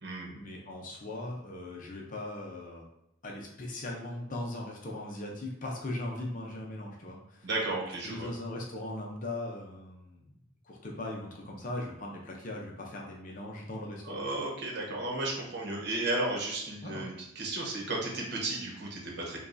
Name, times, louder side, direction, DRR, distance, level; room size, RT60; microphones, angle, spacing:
voice 1, 0.3-2.8 3.2-7.5 8.0-10.3 10.6-14.2 16.8-17.1, left 1 dB, 45° left, -1 dB, 0.6 m, -39 dB
voice 2, 7.4-8.3 14.0-19.4, right 2 dB, 60° right, -2 dB, 1.0 m, -34 dB
5.1 x 2.3 x 2.6 m, 0.80 s
head